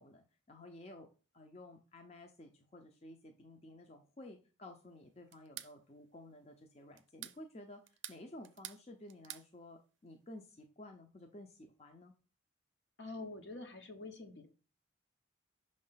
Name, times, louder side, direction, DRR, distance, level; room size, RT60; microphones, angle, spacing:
voice 1, 0.0-12.1, left 1 dB, 35° left, 4 dB, 0.6 m, -53 dB
sound 1, 5.3-5.7 7.0-7.4 7.9-8.8 9.1-9.5, right 14 dB, 80° right, 0.4 m, -47 dB
voice 2, 13.0-14.5, left 2 dB, 70° left, 5 dB, 1.1 m, -46 dB
5.7 x 3.2 x 5.6 m, 0.34 s
head